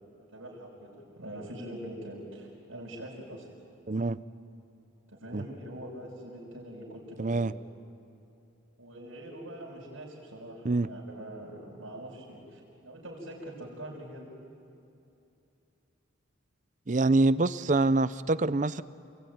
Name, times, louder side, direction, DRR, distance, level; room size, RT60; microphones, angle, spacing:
voice 1, 0.3-3.4 5.1-7.5 8.8-14.3, right 1 dB, 85° right, -4 dB, 6.0 m, -43 dB
voice 2, 3.9-4.2 5.3-5.5 7.2-7.5 10.6-10.9 16.9-18.8, right 2 dB, 40° right, 15 dB, 0.6 m, -25 dB
28.5 x 21.0 x 9.4 m, 2.7 s
head